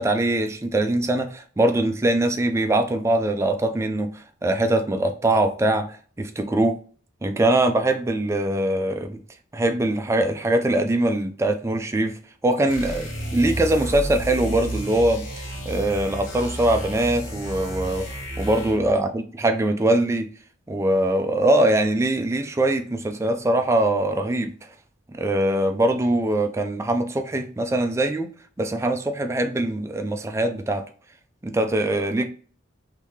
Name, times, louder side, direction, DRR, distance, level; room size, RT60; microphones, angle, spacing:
voice 1, 0.0-6.8 7.2-9.2 9.5-12.2 12.4-15.2 15.7-18.1 18.4-19.1 19.4-20.3 20.7-24.5 25.1-28.3 28.6-30.8 31.4-32.2, right 1 dB, 15° right, 0.3 m, -22 dB
sound 1, 12.7-18.9, right 1 dB, 65° left, 1.1 m, -32 dB
3.6 x 2.7 x 3.1 m
head